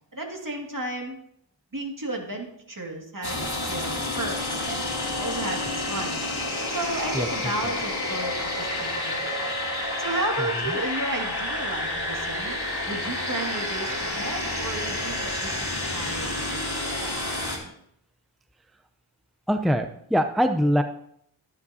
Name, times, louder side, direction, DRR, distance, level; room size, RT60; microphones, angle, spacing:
voice 1, 0.1-1.2 1.7-9.4 10.0-12.5 12.9-16.9, right 2 dB, 45° right, 1 dB, 2.2 m, -33 dB
sound 1, 3.2-17.6, left 2 dB, 60° left, 2.7 m, -29 dB
voice 2, 19.5-20.8, equal, ahead, 7 dB, 0.6 m, -22 dB
13.5 x 9.7 x 2.8 m, 0.70 s
wide cardioid pair, 45°, 45 cm